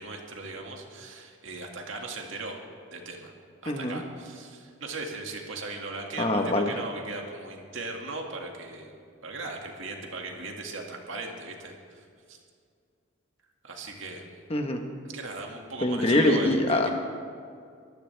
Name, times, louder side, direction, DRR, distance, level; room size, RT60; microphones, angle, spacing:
voice 1, 0.0-2.6 2.9-3.3 3.6-8.9 9.2-12.4 13.6-14.4 15.1-16.9, right 3 dB, 70° right, 1 dB, 2.1 m, -38 dB
voice 2, 3.7-4.0 6.2-6.7 14.5-14.8 15.8-16.9, left 1 dB, 30° left, 4 dB, 1.2 m, -24 dB
23.5 x 14.5 x 3.5 m, 2.3 s
head